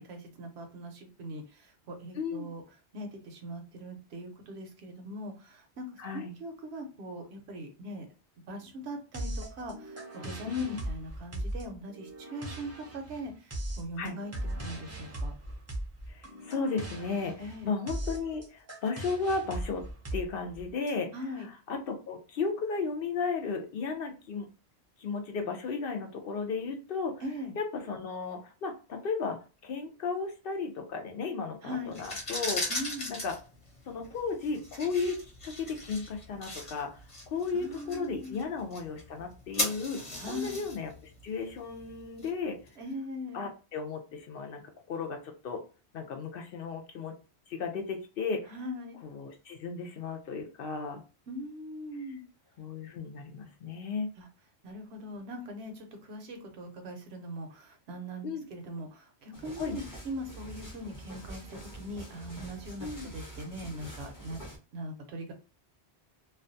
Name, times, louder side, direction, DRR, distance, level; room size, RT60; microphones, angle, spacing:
voice 1, 0.0-2.6 2.9-5.9 6.1-8.1 8.5-14.3 14.6-15.3 17.4-17.7 21.1-21.5 27.2-27.5 31.6-32.0 32.7-33.1 37.5-38.4 40.2-40.6 42.8-43.5 48.5-49.0 51.3-52.2 54.2-54.3 54.6-64.4 64.7-65.3, equal, 75° right, 5 dB, 0.9 m, -41 dB
voice 2, 2.1-2.5 6.0-6.3 10.5-10.8 14.0-14.2 16.1-19.8 20.1-24.5 25.0-27.2 27.6-32.6 33.1-33.4 33.9-42.6 43.3-44.6 44.9-45.6 45.9-47.1 47.5-48.5 49.0-51.0 52.6-54.1 58.2-58.4 59.6-59.8 62.8-63.1, left 4 dB, 65° left, 4 dB, 0.7 m, -35 dB
sound 1, 9.1-20.9, right 1 dB, 20° right, 0.4 m, -39 dB
sound 2, 31.9-42.7, left 1 dB, 40° left, 1.0 m, -39 dB
sound 3, 59.3-64.6, right 1 dB, 20° left, 0.9 m, -45 dB
2.4 x 2.2 x 2.5 m, 0.33 s
omnidirectional pair, 1.1 m